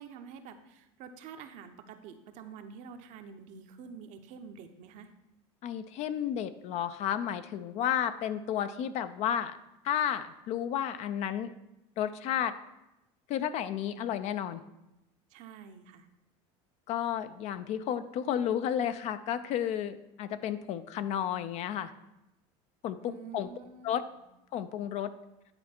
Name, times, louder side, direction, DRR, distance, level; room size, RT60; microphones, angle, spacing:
voice 1, 0.0-5.1 15.3-16.1 23.0-24.2, right 6 dB, 60° right, 7 dB, 0.8 m, -48 dB
voice 2, 5.6-9.5 9.8-11.5 12.0-12.5 13.3-14.6 16.9-21.9 22.8-23.5 23.8-24.0 24.5-25.1, left 10 dB, 50° left, 12 dB, 0.5 m, -32 dB
9.7 x 4.2 x 4.3 m, 0.91 s
supercardioid pair, 110°, 14 cm